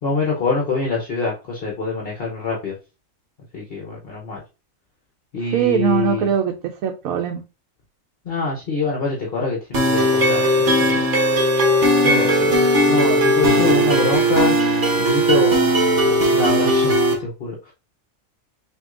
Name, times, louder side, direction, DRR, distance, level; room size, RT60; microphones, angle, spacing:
voice 1, 0.0-2.7 3.5-4.4 5.3-6.3 8.2-10.5 10.8-11.0 12.0-14.5 15.0-15.7 16.0-16.9 17.2-17.7, left 4 dB, 50° left, -1 dB, 1.0 m, -25 dB
voice 2, 5.5-6.5 6.8-7.4, right 8 dB, 85° right, 3 dB, 1.1 m, -20 dB
sound 1, 9.7-17.1, right 1 dB, 60° right, 1.4 m, -17 dB
6.2 x 2.9 x 2.4 m, 0.29 s
omnidirectional pair, 1.4 m